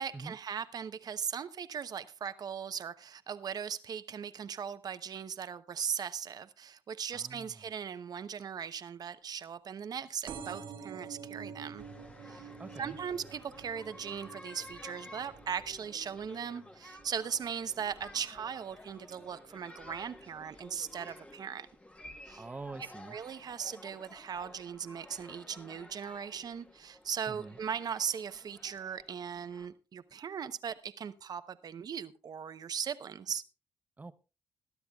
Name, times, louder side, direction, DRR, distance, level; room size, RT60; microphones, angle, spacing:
voice 1, 0.0-11.8 12.3-12.5 12.8-21.7 22.3-22.4 23.1-33.4, right 7 dB, 45° right, 0.9 m, -39 dB
voice 2, 7.1-7.6 12.6-13.0 22.4-23.2 27.3-27.6 34.0-34.1, right 3 dB, 20° right, 0.7 m, -45 dB
sound 1, 10.3-17.5 18.0-18.4 19.3-19.4 19.6-19.7 19.9-20.0, right 6 dB, 65° right, 2.2 m, -48 dB
sound 2, 11.8-29.7, left 1 dB, 15° left, 1.2 m, -53 dB
21.5 x 12.0 x 2.4 m
cardioid pair, 125°, 9 cm